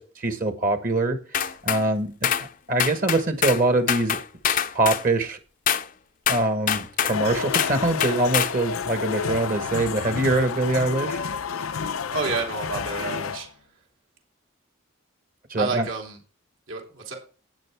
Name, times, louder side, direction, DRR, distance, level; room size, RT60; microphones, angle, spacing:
voice 1, 0.0-4.2 4.7-5.4 6.3-11.2 15.5-15.9, right 2 dB, 40° right, 7 dB, 1.2 m, -24 dB
sound 1, 1.3-1.8 2.2-2.5 2.8-3.6 3.9-5.0 5.7-5.9 6.3-7.2 7.5-8.6, left 9 dB, 40° left, 0.5 m, -24 dB
sound 2, 7.1-13.5, left 6 dB, 90° left, 0.6 m, -30 dB
voice 2, 12.1-13.5 15.6-16.2 16.7-17.2, right 4 dB, 70° right, 0 dB, 2.9 m, -29 dB
12.0 x 9.0 x 3.4 m, 0.36 s
head